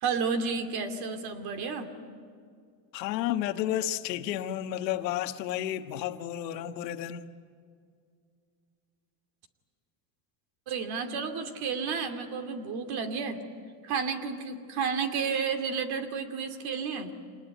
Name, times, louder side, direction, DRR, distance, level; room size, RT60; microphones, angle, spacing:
voice 1, 0.0-1.9 10.7-13.4 13.8-17.1, right 5 dB, 50° right, 2.7 m, -31 dB
voice 2, 2.9-7.2, left 12 dB, 85° left, 1.5 m, -31 dB
26.5 x 20.0 x 9.2 m
supercardioid pair, 125°, 49 cm